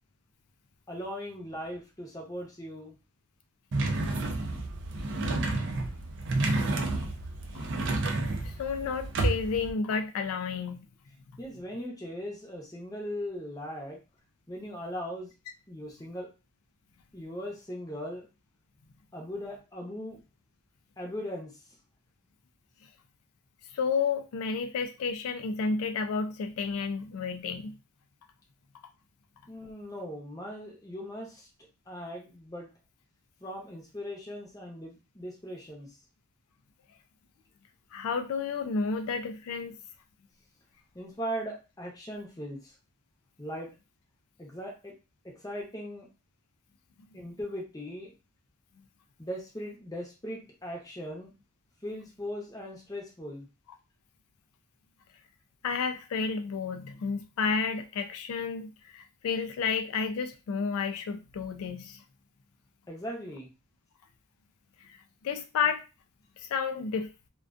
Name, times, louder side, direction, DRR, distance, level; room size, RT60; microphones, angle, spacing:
voice 1, 0.9-3.0 11.4-14.0 14.5-15.3 15.7-16.3 17.1-18.3 19.1-20.2 21.0-21.6 29.5-31.5 31.9-32.7 33.4-35.9 40.9-42.7 43.4-43.7 44.4-44.9 45.2-46.1 47.1-48.1 49.2-51.3 51.8-53.5 62.9-63.5, equal, 15° left, -1 dB, 0.6 m, -39 dB
sound 1, 3.7-9.7, right 2 dB, 55° right, 0.4 m, -30 dB
voice 2, 8.4-10.9 23.7-27.8 37.9-39.8 55.6-62.0 64.8-65.0 65.2-65.8 66.4-67.1, left 5 dB, 80° left, 7 dB, 0.3 m, -31 dB
2.4 x 2.2 x 2.4 m, 0.29 s
head